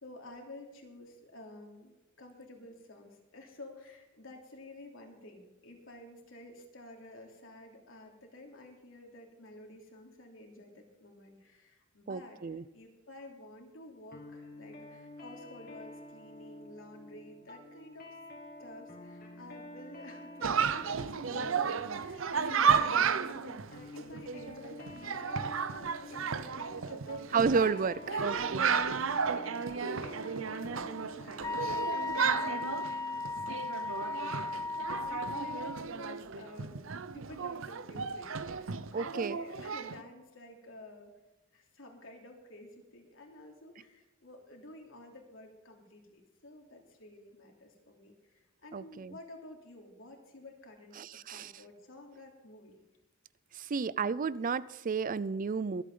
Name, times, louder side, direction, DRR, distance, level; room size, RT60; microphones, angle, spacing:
voice 1, 0.0-18.2 18.6-27.5 28.1-28.6 28.9-36.8 37.1-41.1 41.5-51.0 51.3-52.9 53.5-53.8, left 1 dB, 75° left, 1 dB, 3.2 m, -51 dB
voice 2, 12.1-12.6 27.3-28.7 38.9-39.4 48.7-49.2 51.0-51.5 53.5-55.8, right 5 dB, 40° right, 18 dB, 0.4 m, -32 dB
sound 1, 14.1-33.2, left 2 dB, 50° left, 2.4 m, -49 dB
Chatter, 20.4-40.0, right 6 dB, 75° right, 0.7 m, -33 dB
Wind instrument woodwind instrument, 31.4-35.8, left 3 dB, 15° left, 0.5 m, -36 dB
24.0 x 8.4 x 3.9 m, 1.0 s
head